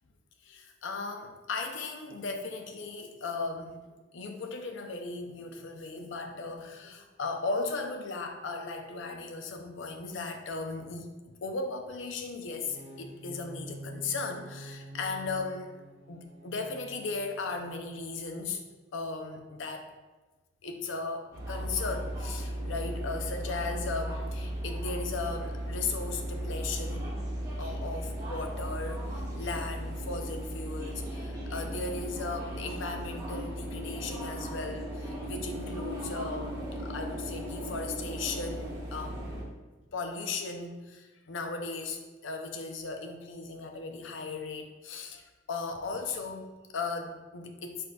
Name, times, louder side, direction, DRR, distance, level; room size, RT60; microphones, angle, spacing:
voice 1, 0.4-15.7 16.1-18.6 18.9-19.9 20.6-27.1 27.6-39.2 39.9-47.9, left 3 dB, 65° left, 5 dB, 0.5 m, -37 dB
sound 1, 12.5-18.5, right 1 dB, 35° right, 0.6 m, -47 dB
sound 2, 21.3-39.4, equal, 15° right, 1.3 m, -36 dB
4.8 x 4.2 x 2.3 m, 1.2 s
head